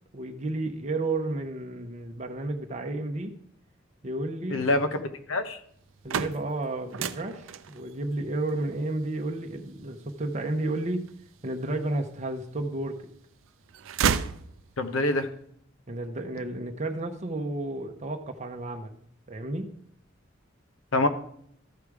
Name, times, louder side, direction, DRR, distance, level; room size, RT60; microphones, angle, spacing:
voice 1, 0.1-3.4 4.0-4.7 6.0-11.1 11.4-13.0 15.9-19.0 19.3-19.7, right 2 dB, 35° right, 4 dB, 0.7 m, -32 dB
voice 2, 4.5-5.6 14.8-15.3 20.9-21.1, left 2 dB, 85° left, 9 dB, 0.9 m, -25 dB
sound 1, 5.8-11.7 12.3-13.1 13.4-15.0, right 7 dB, 70° right, 0.4 m, -33 dB
13.5 x 4.9 x 4.7 m, 0.65 s
head